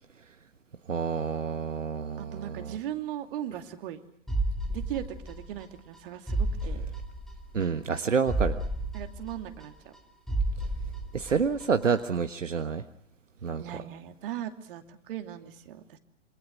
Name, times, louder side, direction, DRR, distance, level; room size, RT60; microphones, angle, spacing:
voice 1, 0.9-2.7 7.5-8.6 11.1-12.8 13.4-13.6, right 6 dB, 75° right, 8 dB, 1.5 m, -28 dB
voice 2, 2.2-4.0 4.7-6.9 8.9-9.9 13.6-16.0, right 11 dB, 45° right, 5 dB, 2.8 m, -38 dB
sound 1, 4.3-5.7 5.9-6.0 6.3-7.7 7.9-8.0 8.3-10.0 10.3-11.7 11.9-12.0, right 2 dB, ahead, 2.6 m, -31 dB
27.5 x 26.0 x 6.3 m, 0.74 s
figure-of-eight pair, 110°, 38 cm